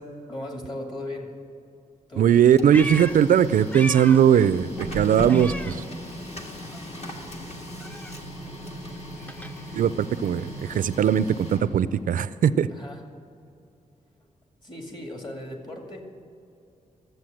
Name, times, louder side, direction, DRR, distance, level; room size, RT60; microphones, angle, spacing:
voice 1, 0.3-1.3 2.1-2.3 12.7-13.0 14.6-16.0, left 1 dB, 30° left, 1 dB, 2.3 m, -37 dB
voice 2, 2.2-5.8 9.7-12.7, right 9 dB, 70° right, 15 dB, 0.4 m, -19 dB
Printer, 2.3-12.1, equal, 50° left, 1.8 m, -37 dB
Meow, 2.3-4.4 4.7-6.4 6.7-10.9, equal, 10° left, 0.5 m, -39 dB
13.5 x 8.0 x 7.7 m, 2.6 s
wide cardioid pair, 120°, 14 cm